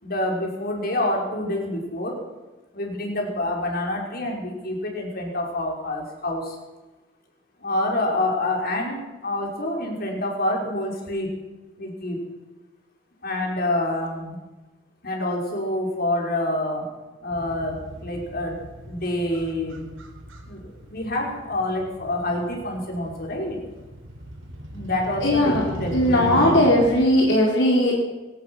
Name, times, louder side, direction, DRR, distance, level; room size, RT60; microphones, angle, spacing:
voice 1, 0.0-2.1 2.7-6.6 7.6-11.3 11.8-12.2 13.2-14.4 15.0-16.8 17.2-18.6 18.9-19.9 20.5-23.6 24.7-26.6, left 1 dB, 50° left, 0 dB, 5.6 m, -27 dB
Motorcycle, 17.3-27.1, equal, 90° right, 4.6 m, -38 dB
voice 2, 25.2-25.6 25.9-27.9, left 1 dB, 70° left, -2 dB, 4.1 m, -18 dB
23.5 x 17.5 x 6.4 m, 1.2 s
head